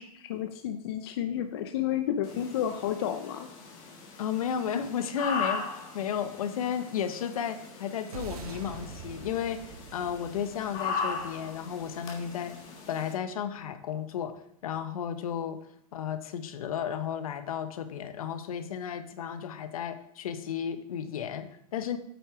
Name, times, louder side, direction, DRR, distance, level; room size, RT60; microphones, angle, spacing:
voice 1, 0.0-3.5, left 10 dB, 40° left, 7 dB, 0.6 m, -31 dB
sound 1, 2.2-13.1, left 5 dB, 25° left, 1.6 m, -39 dB
voice 2, 4.2-12.6 12.9-14.4 14.6-15.6 15.9-22.0, left 8 dB, 70° left, 10 dB, 1.0 m, -33 dB
sound 2, 8.1-12.6, right 6 dB, 85° right, 1.6 m, -45 dB
8.7 x 6.0 x 4.9 m, 0.68 s
supercardioid pair, 175°, 19 cm